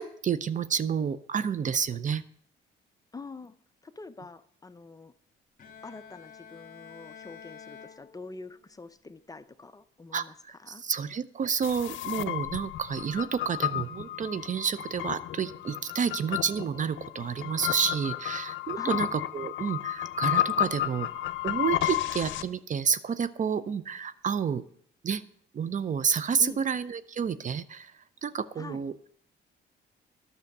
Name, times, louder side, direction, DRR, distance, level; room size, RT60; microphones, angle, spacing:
voice 1, 0.0-2.2 10.1-24.6 25.0-25.2 25.5-27.9 28.2-28.9, right 7 dB, 40° right, 16 dB, 0.5 m, -30 dB
voice 2, 3.1-3.5 3.8-5.1 5.8-10.8 18.8-19.1 26.4-26.6 28.6-28.8, left 3 dB, 20° left, 12 dB, 0.5 m, -45 dB
Bowed string instrument, 5.6-8.7, left 7 dB, 45° left, 1.4 m, -49 dB
sound 1, 11.6-22.4, left 13 dB, 75° left, 0.6 m, -32 dB
10.5 x 6.2 x 6.5 m, 0.64 s
cardioid pair, 90°, 20 cm